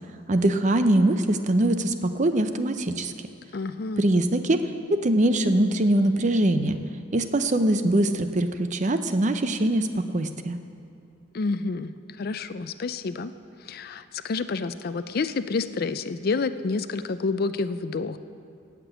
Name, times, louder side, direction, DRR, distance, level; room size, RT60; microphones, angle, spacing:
voice 1, 0.3-3.1 4.0-4.6 5.0-6.8 7.1-10.6, right 1 dB, 35° right, 9 dB, 0.6 m, -22 dB
voice 2, 3.5-4.1 11.3-13.3 13.7-18.2, left 4 dB, 45° left, 12 dB, 0.4 m, -29 dB
16.5 x 6.0 x 8.1 m, 2.5 s
head